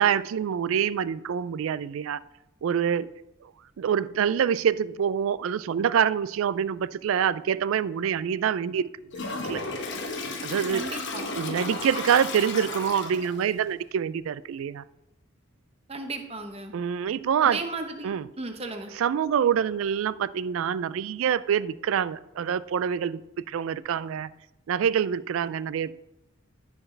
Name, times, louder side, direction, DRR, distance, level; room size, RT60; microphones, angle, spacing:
voice 1, 0.0-2.2 2.6-3.1 3.4-3.5 3.8-8.9 9.3-9.6 10.4-10.9 11.3-14.8 16.7-17.6 18.0-18.3 18.9-23.2 23.5-24.3 24.7-25.9, right 8 dB, 70° right, 0.3 m, -26 dB
Toilet flush, 9.1-13.5, left 3 dB, 55° left, 1.0 m, -34 dB
voice 2, 10.7-11.3 15.9-16.7 17.4-18.9, right 3 dB, 30° right, 0.8 m, -35 dB
14.0 x 4.6 x 3.3 m
head